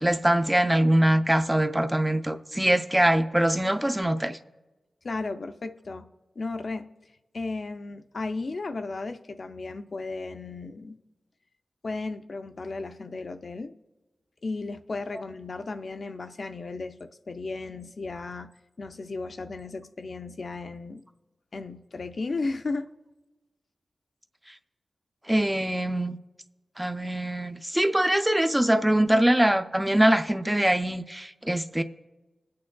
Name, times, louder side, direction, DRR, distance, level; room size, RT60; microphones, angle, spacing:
voice 1, 0.0-4.4 25.3-26.2 26.8-31.8, right 1 dB, 10° right, 0.4 m, -23 dB
voice 2, 5.0-6.1 6.4-6.9 7.3-11.0 11.8-13.7 14.4-18.5 18.8-21.0 21.5-22.9, left 3 dB, 55° left, 0.5 m, -34 dB
20.0 x 8.6 x 2.3 m
wide cardioid pair, 100°, 0 cm